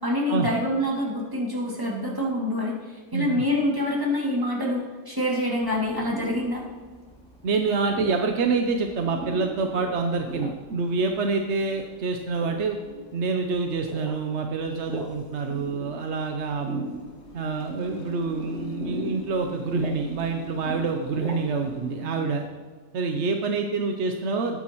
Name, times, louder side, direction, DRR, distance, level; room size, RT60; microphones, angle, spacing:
voice 1, 0.0-6.6, left 1 dB, 15° right, -4 dB, 2.4 m, -26 dB
voice 2, 3.1-3.4 7.4-12.8 13.1-16.8 17.3-22.4 22.9-24.6, right 4 dB, 60° right, 4 dB, 1.0 m, -27 dB
sound 1, 5.6-21.7, equal, 5° left, 2.5 m, -40 dB
sound 2, 10.8-22.5, left 4 dB, 60° left, 1.3 m, -44 dB
17.5 x 9.4 x 3.0 m, 1.5 s
omnidirectional pair, 1.4 m